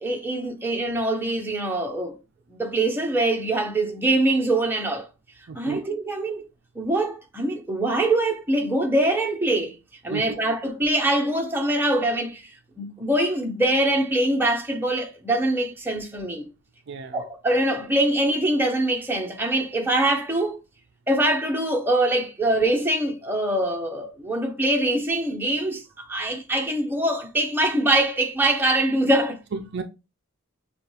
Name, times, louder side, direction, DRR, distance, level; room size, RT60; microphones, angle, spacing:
voice 1, 0.0-2.1 2.5-5.1 5.5-6.5 6.7-9.8 10.0-12.5 12.8-16.5 17.1-20.6 21.1-29.4, right 1 dB, 10° right, 0.8 m, -23 dB
voice 2, 5.5-5.8 10.1-10.4 16.9-17.2 29.5-29.8, right 5 dB, 50° right, 0.4 m, -32 dB
6.8 x 2.3 x 3.2 m
head